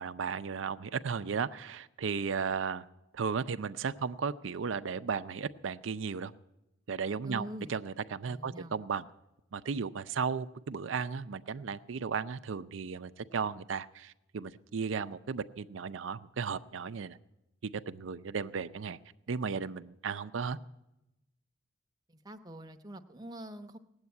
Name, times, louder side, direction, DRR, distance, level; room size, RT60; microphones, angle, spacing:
voice 1, 0.0-2.8 3.1-6.3 6.9-9.0 9.5-17.2 17.7-19.0 19.3-20.6, right 5 dB, 85° right, 11 dB, 0.5 m, -35 dB
voice 2, 7.2-7.7 8.3-8.8 22.1-23.8, right 1 dB, 20° right, 6 dB, 0.7 m, -44 dB
18.0 x 8.0 x 9.5 m, 0.90 s
head